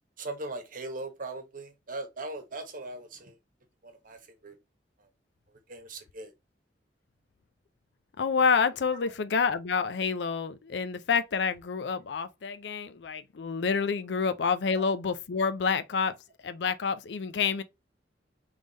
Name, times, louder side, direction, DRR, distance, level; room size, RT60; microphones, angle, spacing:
voice 1, 0.2-3.3 3.8-4.6 5.7-6.3 8.9-9.1, right 2 dB, 50° right, 1.1 m, -39 dB
voice 2, 8.2-16.1 16.4-17.6, left 5 dB, 70° left, 0.5 m, -28 dB
3.6 x 3.3 x 3.9 m
head